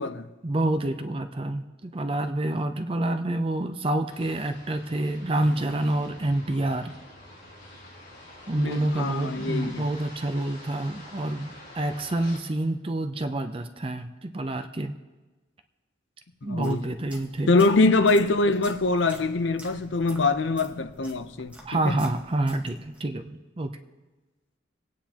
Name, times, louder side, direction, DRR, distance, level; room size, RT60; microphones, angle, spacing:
voice 1, 0.4-6.9 8.5-14.9 16.4-17.5 21.6-23.7, right 1 dB, 30° right, 0.5 m, -28 dB
sound 1, 4.1-12.4, left 1 dB, 40° left, 5.2 m, -47 dB
sound 2, 5.4-9.2, left 1 dB, 75° right, 1.8 m, -48 dB
voice 2, 8.6-9.8 16.4-16.8 17.5-21.5 21.9-22.0, left 3 dB, 65° left, 0.6 m, -23 dB
sound 3, 16.4-23.1, right 1 dB, 5° right, 1.3 m, -47 dB
27.5 x 9.3 x 2.9 m
head